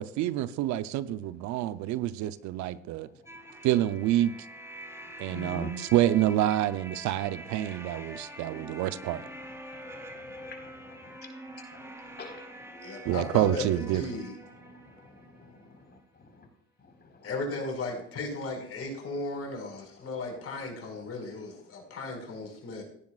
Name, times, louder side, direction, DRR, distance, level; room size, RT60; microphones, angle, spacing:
voice 1, 0.0-3.1 3.6-4.3 5.2-9.2 13.0-14.0, right 13 dB, 75° right, 0.7 m, -27 dB
sound 1, 3.3-15.9, right 1 dB, 10° right, 3.6 m, -45 dB
voice 2, 5.3-5.8 9.7-11.2 11.5-12.4 14.6-16.5 16.8-17.3, left 2 dB, 35° left, 4.5 m, -46 dB
voice 3, 12.7-13.6 13.9-14.4 17.2-22.8, left 2 dB, 55° left, 5.4 m, -36 dB
16.5 x 10.5 x 2.4 m
supercardioid pair, 75°, 29 cm